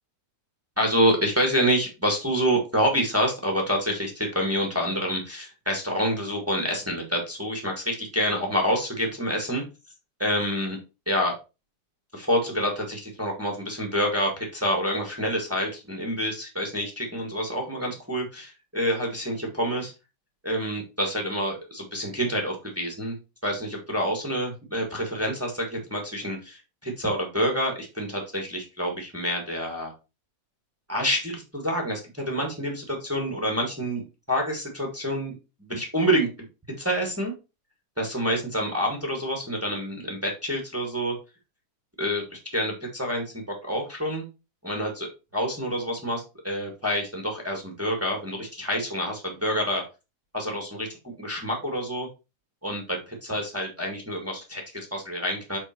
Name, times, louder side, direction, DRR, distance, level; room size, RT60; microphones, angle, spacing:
voice 1, 0.8-9.6 10.2-10.8 11.0-11.3 12.1-19.9 20.4-23.1 23.4-29.9 30.9-34.0 34.3-36.3 36.8-37.3 38.0-41.1 42.0-44.3 44.6-49.8 50.3-52.1 52.6-55.6, equal, 10° right, -1 dB, 1.0 m, -27 dB
6.8 x 4.4 x 4.4 m, 0.28 s
omnidirectional pair, 3.5 m